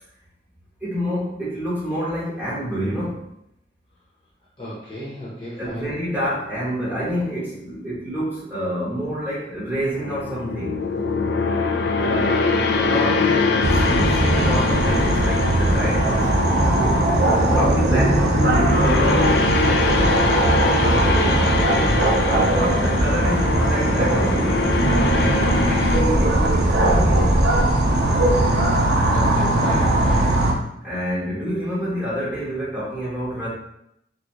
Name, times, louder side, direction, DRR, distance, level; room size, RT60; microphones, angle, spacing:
voice 1, 0.8-3.2 5.6-10.8 12.0-16.3 17.5-19.3 22.2-24.6 25.1-27.4 30.8-33.5, equal, 10° right, -9 dB, 1.2 m, -27 dB
voice 2, 4.6-6.0 12.5-13.6 20.3-22.0 28.7-30.4, equal, 30° left, -7 dB, 0.9 m, -32 dB
sound 1, 9.9-26.0, left 4 dB, 65° left, 0.4 m, -24 dB
sound 2, 13.6-30.5, right 1 dB, 60° right, 0.6 m, -19 dB
3.9 x 2.3 x 3.1 m, 0.78 s
head